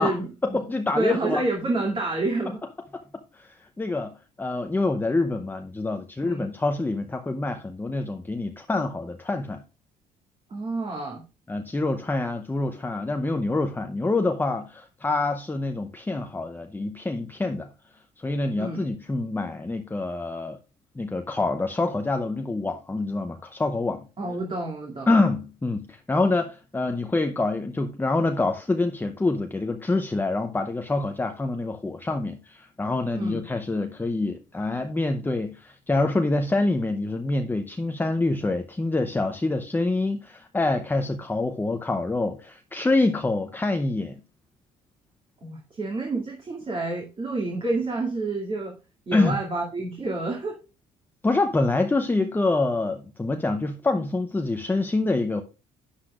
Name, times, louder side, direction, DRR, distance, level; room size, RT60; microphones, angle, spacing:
voice 1, 0.0-0.6 0.9-2.6 6.2-6.5 10.5-11.2 18.6-18.8 24.2-25.1 33.1-33.4 45.4-48.7 49.1-50.6, right 2 dB, 30° right, 2.4 m, -29 dB
voice 2, 0.5-1.4 2.9-3.0 3.3-9.6 11.5-17.7 18.2-20.6 21.0-24.0 25.1-44.2 49.1-49.4 51.2-55.4, left 2 dB, 10° left, 0.7 m, -26 dB
12.0 x 9.8 x 2.4 m
cardioid pair, 110°, 17 cm